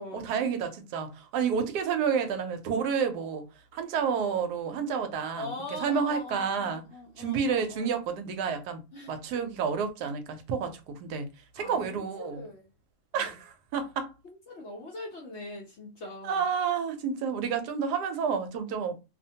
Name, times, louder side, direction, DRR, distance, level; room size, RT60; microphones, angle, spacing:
voice 1, 0.1-3.5 3.7-5.5 5.8-6.8 7.2-8.8 9.1-11.3 11.5-12.4 13.1-14.1 16.2-18.9, right 6 dB, 80° right, 1.1 m, -30 dB
voice 2, 5.4-7.9 8.9-9.2 11.5-12.7 13.1-13.3 14.2-16.5, left 2 dB, 60° left, 0.8 m, -42 dB
2.7 x 2.1 x 2.7 m
omnidirectional pair, 1.7 m